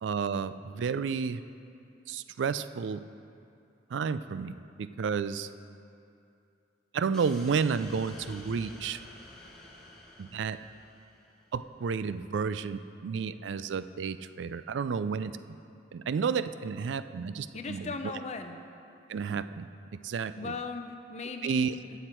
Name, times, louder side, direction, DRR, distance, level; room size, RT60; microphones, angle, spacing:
voice 1, 0.0-1.4 2.1-3.0 3.9-5.5 6.9-9.0 10.2-10.6 11.5-15.4 15.9-18.1 19.1-20.5 21.4-21.7, right 6 dB, 70° right, 13 dB, 0.4 m, -31 dB
sound 1, 7.1-11.5, left 1 dB, 5° left, 2.0 m, -50 dB
voice 2, 17.5-18.6 20.4-22.0, left 3 dB, 35° left, 6 dB, 0.6 m, -38 dB
14.0 x 8.0 x 4.4 m, 2.6 s
head